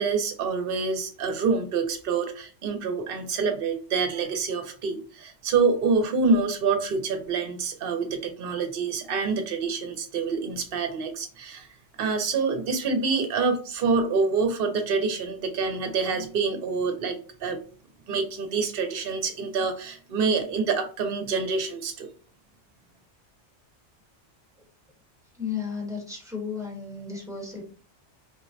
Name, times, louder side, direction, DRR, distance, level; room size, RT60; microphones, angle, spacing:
voice 1, 0.0-11.7 12.0-17.6 18.1-22.1, right 4 dB, 60° right, 6 dB, 0.8 m, -26 dB
voice 2, 25.3-27.6, left 6 dB, 5° right, -1 dB, 0.9 m, -34 dB
3.8 x 2.1 x 2.5 m, 0.39 s
omnidirectional pair, 1.2 m